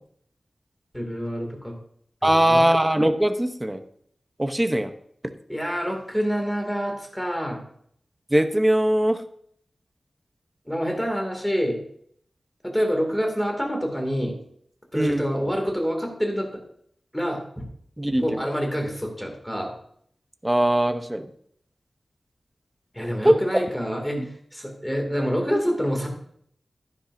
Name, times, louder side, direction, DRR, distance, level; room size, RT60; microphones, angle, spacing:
voice 1, 0.9-1.7 2.2-2.7 5.5-7.6 10.7-11.8 12.6-14.4 14.9-16.6 17.1-17.7 18.2-19.7 22.9-26.1, equal, 5° left, 2 dB, 2.3 m, -27 dB
voice 2, 2.2-3.8 4.4-4.9 8.3-9.2 15.0-15.3 18.0-18.2 20.4-21.3 23.2-23.4 24.2-24.3, right 1 dB, 15° right, 8 dB, 0.7 m, -20 dB
12.0 x 10.0 x 2.6 m, 0.67 s
wide cardioid pair, 90°, 0 cm